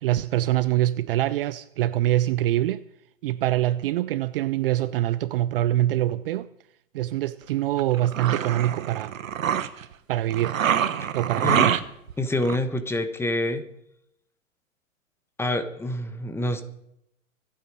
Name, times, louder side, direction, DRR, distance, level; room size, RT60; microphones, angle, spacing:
voice 1, 0.0-2.8 3.2-6.5 6.9-9.2 10.1-10.6 11.1-11.7, right 14 dB, 45° right, 0.6 m, -24 dB
sound 1, 7.8-9.9 10.3-12.1 12.4-12.6, right 9 dB, 70° right, 1.3 m, -25 dB
voice 2, 11.4-11.7 12.2-13.6 15.4-16.6, left 1 dB, 5° left, 1.2 m, -26 dB
25.0 x 8.9 x 4.8 m
hypercardioid pair, 120°, 41 cm